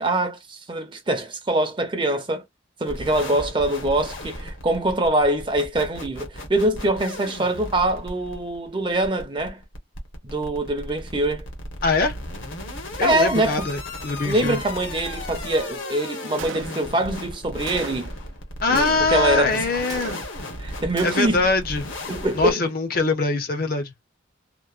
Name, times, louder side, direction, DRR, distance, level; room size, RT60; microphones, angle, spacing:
voice 1, 0.0-2.4 2.8-9.6 10.2-11.5 13.0-13.7 14.2-18.1 18.7-19.8 20.6-21.4 22.1-22.6, right 1 dB, 25° right, 0.6 m, -24 dB
sound 1, 2.9-22.5, left 1 dB, 75° left, 1.0 m, -35 dB
voice 2, 11.8-12.1 13.0-14.6 18.6-20.2 21.0-21.9 22.4-23.9, left 3 dB, 45° left, 0.6 m, -23 dB
Gunshot gunfire, 16.4-17.1 17.7-18.2 18.7-19.4 19.9-20.6 21.0-21.5, right 6 dB, 70° right, 0.4 m, -36 dB
2.9 x 2.0 x 2.4 m
head